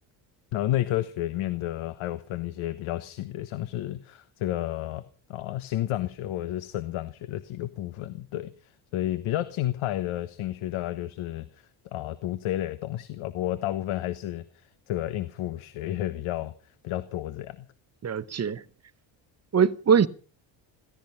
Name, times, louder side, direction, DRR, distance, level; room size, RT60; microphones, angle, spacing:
voice 1, 0.5-5.0 5.3-14.4 14.9-16.5 16.8-17.7, left 14 dB, 80° left, 1.3 m, -31 dB
voice 2, 18.0-18.6 19.5-20.1, right 7 dB, 30° right, 1.0 m, -22 dB
16.0 x 16.0 x 5.7 m
cardioid pair, 90°, 49 cm